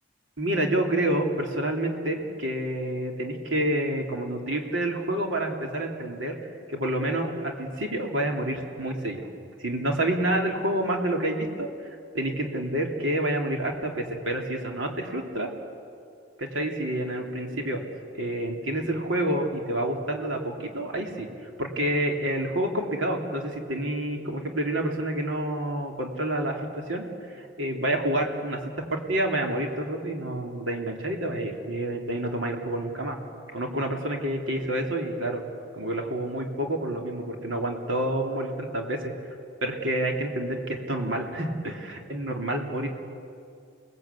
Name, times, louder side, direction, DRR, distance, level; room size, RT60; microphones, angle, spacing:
voice 1, 0.4-6.3 6.7-9.3 9.6-11.7 12.1-15.5 16.4-17.8 18.1-21.3 21.6-26.6 26.9-27.0 27.4-33.2 33.5-35.4 35.7-39.1 39.6-42.9, right 1 dB, 80° right, 1 dB, 3.3 m, -28 dB
29.5 x 19.5 x 8.4 m, 2.4 s
head